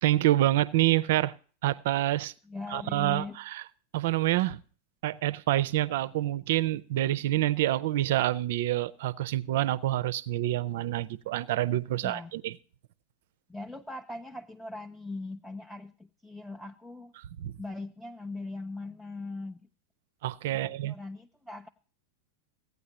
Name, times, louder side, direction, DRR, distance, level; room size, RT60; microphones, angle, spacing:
voice 1, 0.0-1.3 1.6-2.3 2.7-3.6 3.9-4.6 5.0-12.6 17.2-17.5 20.2-20.9, right 14 dB, 55° right, 0.5 m, -27 dB
voice 2, 2.5-3.4 12.0-12.3 13.5-17.1 17.6-19.7 20.5-21.7, left 2 dB, ahead, 0.5 m, -40 dB
16.0 x 9.3 x 2.8 m
figure-of-eight pair, 90°, 0 cm